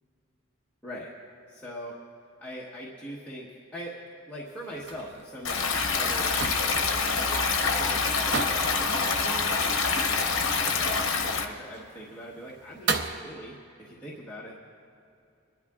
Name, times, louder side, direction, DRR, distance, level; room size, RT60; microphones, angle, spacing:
voice 1, 0.8-1.1 1.5-2.0 2.4-4.0 4.3-7.4 7.8-14.6, equal, 10° left, -7 dB, 1.1 m, -42 dB
sound 1, 4.5-13.2, right 4 dB, 55° right, 0.6 m, -37 dB
Stream, 5.4-11.4, left 4 dB, 65° left, 1.0 m, -26 dB
26.0 x 11.0 x 2.4 m, 2.6 s
head